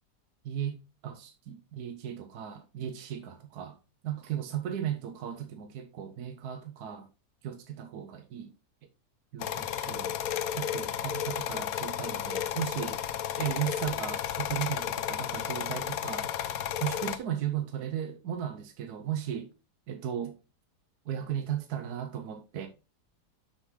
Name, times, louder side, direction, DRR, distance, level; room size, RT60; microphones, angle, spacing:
voice 1, 0.4-3.8 4.0-7.1 7.4-8.5 9.3-10.2 10.5-13.0 13.4-16.5 16.8-19.5 19.9-20.4 21.1-22.7, right 10 dB, 75° right, 1.3 m, -36 dB
sound 1, 9.4-17.2, left 10 dB, 70° left, 1.0 m, -33 dB
6.6 x 6.2 x 3.7 m
omnidirectional pair, 1.8 m